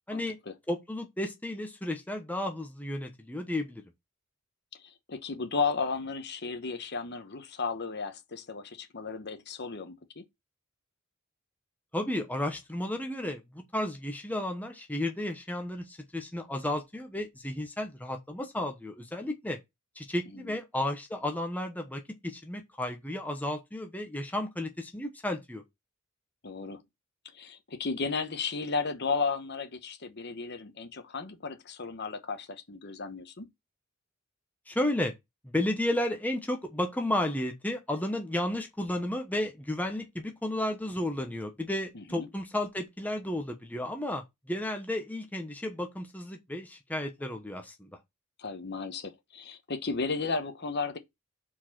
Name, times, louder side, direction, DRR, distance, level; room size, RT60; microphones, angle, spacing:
voice 1, 0.7-3.8 11.9-19.6 20.0-25.6 34.7-35.1 35.4-48.0, left 1 dB, 10° left, 1.0 m, -33 dB
voice 2, 4.8-10.2 20.3-20.6 26.4-26.8 27.3-33.5 41.9-42.3 48.4-51.0, left 4 dB, 55° left, 1.1 m, -34 dB
4.7 x 4.7 x 5.9 m
head